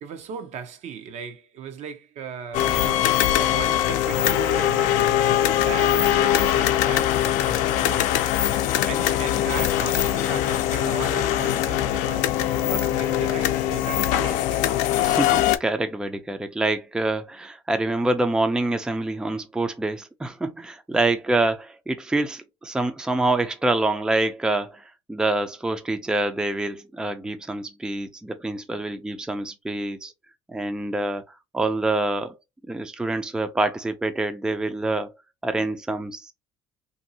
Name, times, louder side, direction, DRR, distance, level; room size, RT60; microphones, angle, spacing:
voice 1, 0.0-8.1 8.9-14.6, right 7 dB, 60° right, 0.7 m, -37 dB
sound 1, 2.5-15.6, left 12 dB, 75° left, 0.5 m, -22 dB
voice 2, 15.0-30.1 30.5-32.4 32.7-35.1 35.4-36.3, right 2 dB, 5° right, 0.4 m, -26 dB
2.9 x 2.7 x 2.7 m
supercardioid pair, 90°, 13 cm